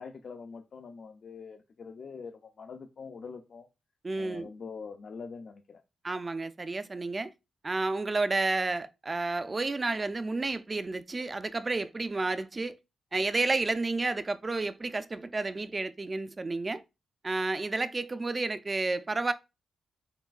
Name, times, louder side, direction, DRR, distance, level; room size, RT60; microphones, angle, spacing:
voice 1, 0.0-3.7 4.2-5.8, left 5 dB, 65° left, 0.4 m, -44 dB
voice 2, 4.0-4.5 6.0-7.3 7.6-12.8 13.1-16.8 17.2-19.3, right 3 dB, 35° right, 0.4 m, -31 dB
5.8 x 2.2 x 2.3 m
supercardioid pair, 50°, 0 cm